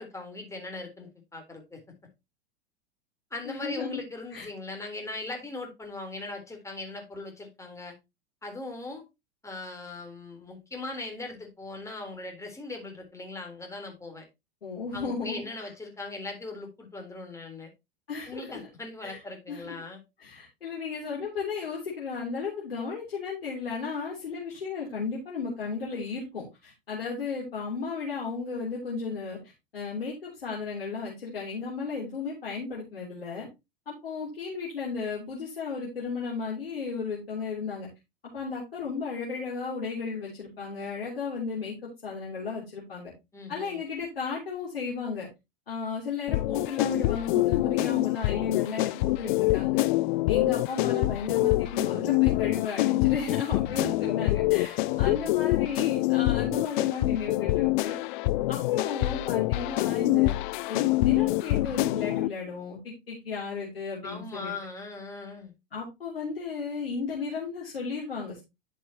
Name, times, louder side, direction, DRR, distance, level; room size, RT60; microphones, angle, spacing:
voice 1, 0.0-1.8 3.3-8.0 8.4-9.0 9.4-14.3 14.9-17.7 18.3-20.0 43.3-43.8 54.9-55.5 64.0-65.5, left 2 dB, 10° left, 2 dB, 3.7 m, -39 dB
voice 2, 3.4-4.0 4.3-4.5 14.6-15.7 18.1-18.6 19.0-19.2 19.5-19.7 20.2-33.5 33.9-37.9 38.3-43.1 43.5-45.3 45.7-49.9 50.3-58.0 58.5-60.4 60.7-64.5 65.7-68.4, left 5 dB, 90° left, -3 dB, 3.3 m, -34 dB
sound 1, 46.3-62.3, left 19 dB, 55° left, 0.5 m, -26 dB
11.0 x 6.4 x 2.9 m, 0.23 s
hypercardioid pair, 100°, 29 cm